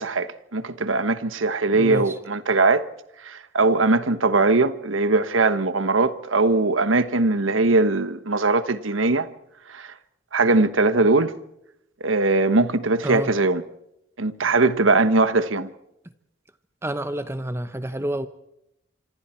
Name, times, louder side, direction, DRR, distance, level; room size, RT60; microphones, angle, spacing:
voice 1, 0.0-2.9 3.2-9.3 9.7-10.0 10.3-11.3 12.0-13.6 14.2-15.7, right 3 dB, 90° right, 1.2 m, -20 dB
voice 2, 1.7-2.1 13.0-13.3 16.8-18.3, right 1 dB, 15° right, 0.9 m, -28 dB
26.5 x 26.0 x 4.5 m
head